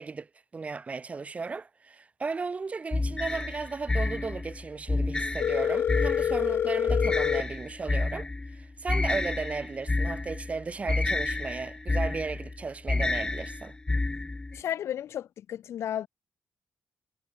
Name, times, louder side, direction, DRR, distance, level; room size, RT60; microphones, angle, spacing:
voice 1, 0.0-13.8, right 4 dB, 30° right, 3.1 m, -35 dB
sound 1, 2.9-14.6, left 2 dB, 20° left, 3.0 m, -30 dB
Telephone, 5.4-7.4, left 9 dB, 55° left, 0.3 m, -26 dB
voice 2, 14.5-16.1, left 10 dB, 85° left, 2.2 m, -33 dB
wide cardioid pair, 135°, 4 cm